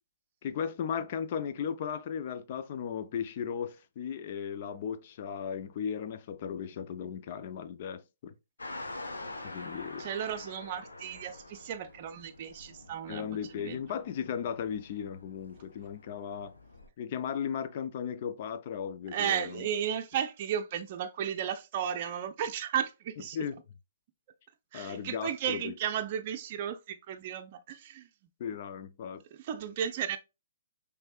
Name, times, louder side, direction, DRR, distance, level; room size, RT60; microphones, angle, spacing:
voice 1, 0.4-8.3 9.4-10.1 13.1-16.6 17.0-19.7 23.3-23.6 24.7-25.7 28.4-29.2, left 7 dB, 45° left, 0.5 m, -36 dB
sound 1, 8.6-16.9, left 2 dB, 85° left, 1.0 m, -46 dB
voice 2, 10.0-13.8 19.1-23.4 24.7-28.1 29.4-30.2, right 9 dB, 40° right, 0.5 m, -34 dB
5.2 x 3.3 x 2.3 m
hypercardioid pair, 135°, 0 cm